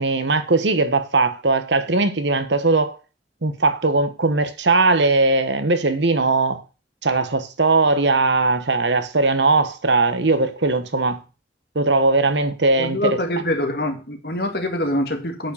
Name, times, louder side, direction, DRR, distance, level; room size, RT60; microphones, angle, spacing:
voice 1, 0.0-3.0 3.4-6.6 7.0-11.2 11.7-13.0, right 3 dB, 80° right, 1.2 m, -19 dB
voice 2, 12.8-15.5, left 1 dB, 60° left, 2.0 m, -24 dB
9.0 x 5.2 x 7.2 m
head